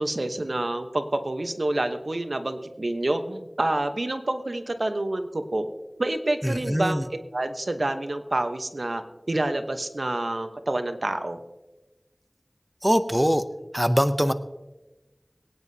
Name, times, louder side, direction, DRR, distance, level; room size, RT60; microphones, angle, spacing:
voice 1, 0.0-5.7 6.0-7.0 7.3-9.0 9.3-11.4, right 1 dB, 65° right, 7 dB, 1.0 m, -28 dB
voice 2, 6.4-7.0 12.8-13.4 13.7-14.3, equal, 5° right, 10 dB, 0.6 m, -22 dB
23.0 x 9.4 x 2.8 m, 1.1 s
wide cardioid pair, 40°, 0 cm